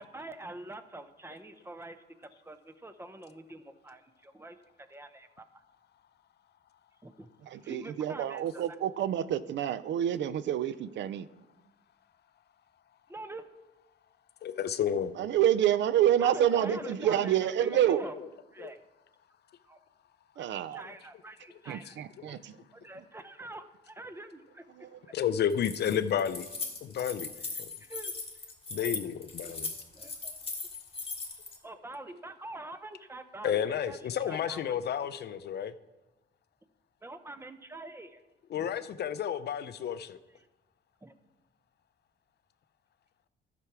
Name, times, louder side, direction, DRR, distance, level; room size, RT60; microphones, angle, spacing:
voice 1, 0.0-5.4 7.0-7.3 7.6-8.6 13.1-13.5 16.2-18.2 18.5-18.8 19.6-19.8 20.4-22.0 22.3-22.4 22.7-24.9 27.4-27.5 27.8-28.1 29.4-29.5 29.9-30.3 31.6-34.0 34.3-35.1 37.0-38.2 38.5-38.7 40.3-40.5 41.0-41.1, right 2 dB, 10° right, 0.7 m, -45 dB
voice 2, 7.5-11.3 15.2-18.0 20.4-20.8 21.7-22.6 24.8-24.9, right 11 dB, 65° right, 0.4 m, -28 dB
voice 3, 14.4-15.1 16.5-16.8 17.7-17.8 18.2-18.3 18.6-18.7 20.8-20.9 21.9-22.3 25.1-26.5 26.8-27.3 27.6-27.7 28.7-29.7 33.4-35.7 38.5-40.2, left 9 dB, 55° left, 0.5 m, -31 dB
Keys jangling, 25.5-31.6, left 4 dB, 30° left, 1.7 m, -39 dB
12.0 x 6.0 x 4.8 m
cardioid pair, 90°, 20 cm